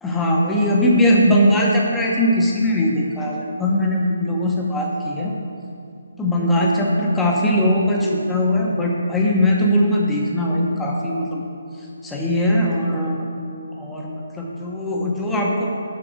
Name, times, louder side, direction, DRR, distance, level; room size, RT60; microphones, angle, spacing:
voice 1, 0.0-5.3 6.2-11.4 12.0-13.2 13.8-15.8, left 1 dB, 5° left, -3 dB, 1.0 m, -20 dB
7.8 x 5.8 x 6.3 m, 2.5 s
figure-of-eight pair, 150°, 0 cm